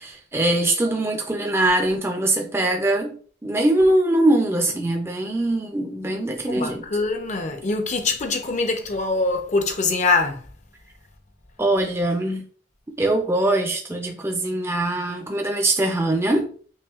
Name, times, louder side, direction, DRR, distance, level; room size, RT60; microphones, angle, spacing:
voice 1, 0.0-3.1 3.4-6.9 11.6-12.5 13.0-16.5, right 1 dB, 15° right, 0.4 m, -22 dB
voice 2, 6.5-10.4, left 3 dB, 35° left, 0.6 m, -23 dB
5.5 x 2.3 x 2.4 m
head